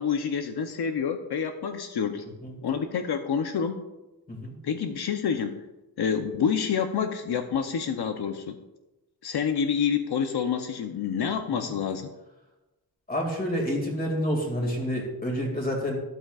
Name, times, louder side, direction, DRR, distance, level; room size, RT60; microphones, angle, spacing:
voice 1, 0.0-2.2 2.6-3.8 4.6-5.6 6.0-8.6 9.2-12.1, left 7 dB, 80° left, 6 dB, 0.7 m, -28 dB
voice 2, 13.1-16.0, equal, 25° left, 1 dB, 2.3 m, -28 dB
13.0 x 11.5 x 2.4 m, 1.0 s
wide cardioid pair, 175°, 39 cm